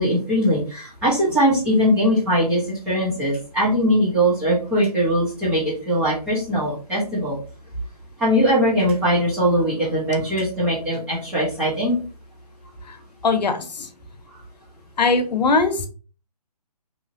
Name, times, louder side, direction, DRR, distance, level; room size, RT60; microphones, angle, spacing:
voice 1, 0.0-7.4 8.2-12.0, equal, 5° right, -8 dB, 0.3 m, -21 dB
voice 2, 13.2-13.9 15.0-15.9, left 4 dB, 80° left, 8 dB, 0.7 m, -20 dB
2.9 x 2.5 x 2.5 m, 0.37 s
hypercardioid pair, 150°, 21 cm